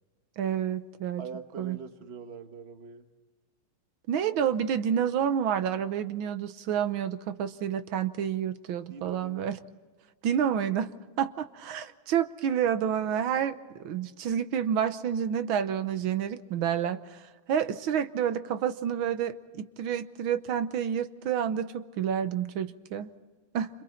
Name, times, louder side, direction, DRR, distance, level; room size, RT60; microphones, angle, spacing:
voice 1, 0.4-1.2 1.6-1.8 4.1-9.6 10.2-10.9 11.2-23.1 23.5-23.7, right 9 dB, 75° right, 12 dB, 1.7 m, -29 dB
voice 2, 1.2-3.1 8.9-9.5, right 5 dB, 35° right, 8 dB, 1.3 m, -43 dB
29.0 x 26.5 x 4.4 m, 1.4 s
omnidirectional pair, 2.3 m